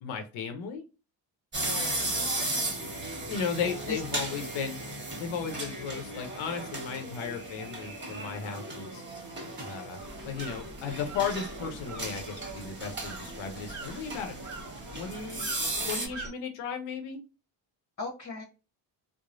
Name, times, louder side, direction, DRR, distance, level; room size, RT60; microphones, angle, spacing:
voice 1, 0.0-0.8 3.3-4.9 5.2-9.0 9.6-10.0 10.2-14.4 14.9-15.4 15.9-17.2, left 6 dB, 85° left, 5 dB, 0.7 m, -35 dB
sound 1, 1.5-16.1, right 2 dB, 25° right, 1.3 m, -36 dB
voice 2, 1.6-2.7 3.9-4.0 5.9-6.0 18.0-18.4, left 3 dB, 35° left, -2 dB, 1.0 m, -39 dB
sound 2, 10.0-16.3, right 3 dB, 40° right, 1.0 m, -44 dB
3.0 x 2.0 x 2.5 m, 0.30 s
cardioid pair, 80°, 46 cm